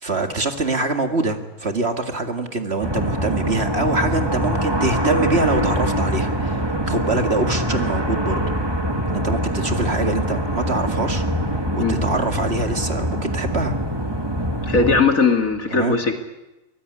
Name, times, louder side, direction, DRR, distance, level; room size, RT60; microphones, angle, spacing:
voice 1, 0.0-8.4 9.1-11.3 11.7-13.8 15.7-16.0, right 3 dB, 45° right, 6 dB, 2.5 m, -24 dB
sound 1, 2.8-15.0, right 1 dB, 15° right, 2.1 m, -23 dB
voice 2, 14.6-16.1, left 4 dB, 65° left, 5 dB, 3.0 m, -18 dB
23.5 x 20.0 x 9.9 m, 0.98 s
omnidirectional pair, 1.6 m